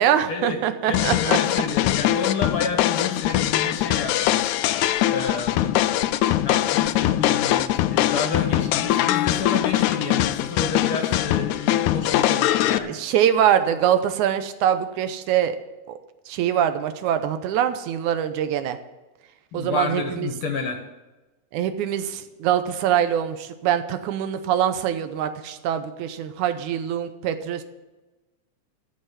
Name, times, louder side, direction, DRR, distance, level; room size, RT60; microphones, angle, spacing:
voice 1, 0.0-1.4 12.8-15.6 15.9-16.0 16.3-18.8 19.5-20.3 21.5-27.6, right 10 dB, 80° right, 10 dB, 2.2 m, -23 dB
sound 1, 0.9-12.8, left 13 dB, 80° left, 1.9 m, -22 dB
voice 2, 0.9-4.5 5.1-5.8 6.4-13.0 19.5-20.8, left 5 dB, 55° left, 4 dB, 1.8 m, -30 dB
13.5 x 5.6 x 9.6 m, 1.1 s
omnidirectional pair, 3.5 m